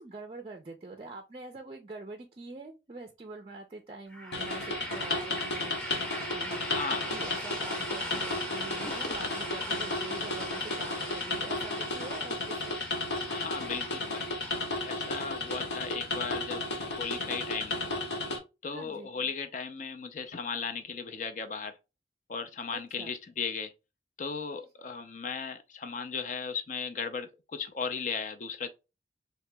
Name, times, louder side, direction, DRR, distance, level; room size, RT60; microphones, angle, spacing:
voice 1, 0.0-6.6 7.1-12.8 18.7-19.1 22.7-23.1, right 2 dB, 30° right, 0.4 m, -44 dB
sound 1, 4.1-17.9, right 1 dB, 5° left, 0.8 m, -41 dB
sound 2, 4.3-18.4, left 2 dB, 75° left, 0.7 m, -34 dB
voice 2, 6.6-7.0 13.3-14.3 14.8-17.9 18.6-21.8 22.3-23.7 24.2-28.7, left 5 dB, 45° left, 0.4 m, -36 dB
2.9 x 2.8 x 3.3 m
head